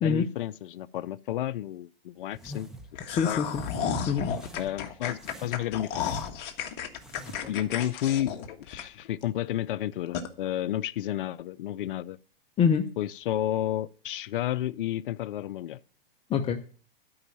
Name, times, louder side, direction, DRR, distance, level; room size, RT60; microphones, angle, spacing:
voice 1, 0.0-2.7 3.1-3.4 4.5-6.1 7.4-12.2 13.0-15.8, left 12 dB, 65° left, 0.5 m, -31 dB
sound 1, 2.3-2.9 3.3-3.9 4.3-4.8 5.1-6.5 6.9-7.6, equal, ahead, 1.3 m, -46 dB
sound 2, 2.9-9.2 9.6-9.7 10.1-10.3, left 7 dB, 35° left, 1.6 m, -33 dB
voice 2, 3.1-3.6 4.1-4.3 12.6-12.9 16.3-16.9, left 6 dB, 20° left, 0.8 m, -25 dB
12.5 x 5.5 x 8.9 m
hypercardioid pair, 125°, 29 cm